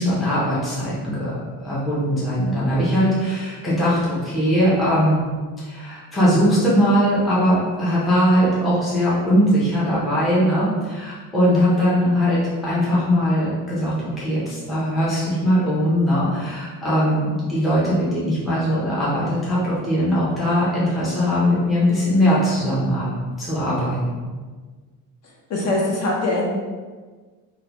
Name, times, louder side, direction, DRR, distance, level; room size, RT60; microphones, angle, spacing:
voice 1, 0.0-1.4 1.6-5.3 5.6-23.1 23.4-24.3, equal, ahead, -9 dB, 0.5 m, -20 dB
voice 2, 25.5-26.5, left 2 dB, 40° left, -3 dB, 0.7 m, -22 dB
3.7 x 2.1 x 2.9 m, 1.4 s
cardioid pair, 165°, 40 cm